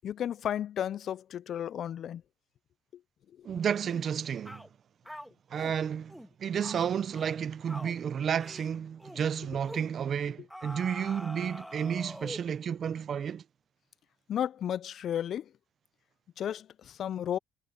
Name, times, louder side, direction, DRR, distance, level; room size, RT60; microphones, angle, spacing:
voice 1, 0.0-2.2 2.9-3.0 3.4-3.5 14.3-15.5 16.4-17.4, left 10 dB, 55° left, 0.3 m, -33 dB
voice 2, 3.4-4.7 5.5-13.4, right 8 dB, 50° right, 0.8 m, -32 dB
sound 1, 3.8-4.1 4.4-4.7 5.0-5.8 6.1-6.3 6.6-6.8 7.1-7.4 7.7-8.0 8.4-8.7 9.0-9.2 9.7-9.9 10.5-12.5, equal, ahead, 1.6 m, -44 dB
cardioid pair, 95°, 0 cm